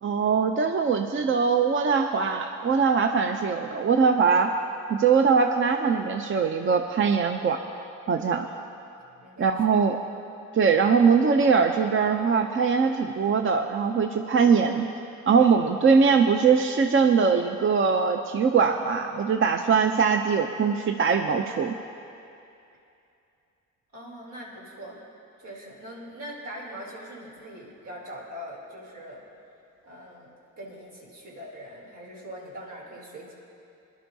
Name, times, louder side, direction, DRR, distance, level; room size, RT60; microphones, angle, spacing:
voice 1, 0.0-4.5 4.9-7.6 8.1-8.5 9.4-10.0 10.5-14.9 15.3-21.8, right 5 dB, 40° right, 6 dB, 0.6 m, -22 dB
voice 2, 9.2-9.8 23.9-25.0 25.4-29.2 29.8-33.3, equal, 70° right, -4 dB, 3.4 m, -42 dB
21.0 x 11.5 x 2.8 m, 2.7 s
cardioid pair, 70°, 32 cm